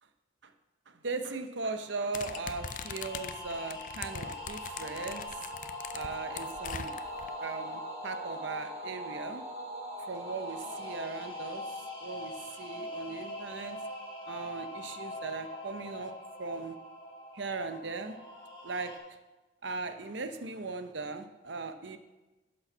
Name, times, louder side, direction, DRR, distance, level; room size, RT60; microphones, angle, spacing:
voice 1, 0.9-5.5 5.9-6.9 7.4-9.4 10.1-13.8 14.3-16.1 16.4-16.8 17.3-18.2 18.6-18.9 19.6-22.0, right 3 dB, 65° right, 8 dB, 0.8 m, -38 dB
sound 1, 1.7-19.0, left 1 dB, 25° left, 2.2 m, -44 dB
sound 2, 2.1-7.3, left 7 dB, 40° left, 0.4 m, -42 dB
sound 3, 4.1-12.7, right 1 dB, 35° right, 1.2 m, -43 dB
10.5 x 6.4 x 6.1 m, 1.1 s
head